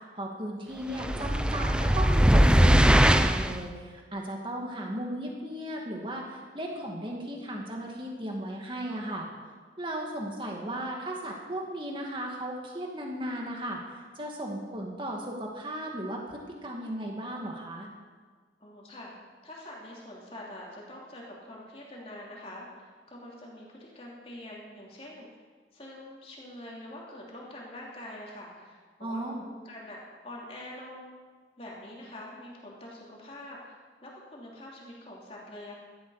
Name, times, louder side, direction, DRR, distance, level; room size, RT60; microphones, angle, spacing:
voice 1, 0.2-9.3 9.8-17.9 29.0-29.4, right 1 dB, 25° right, 0 dB, 2.3 m, -36 dB
sound 1, 1.0-3.6, equal, 5° right, 0.4 m, -20 dB
voice 2, 18.6-19.1 19.4-25.3 25.7-31.1 31.6-35.7, left 1 dB, 30° left, -3 dB, 3.2 m, -45 dB
17.0 x 12.5 x 5.0 m, 1.5 s
head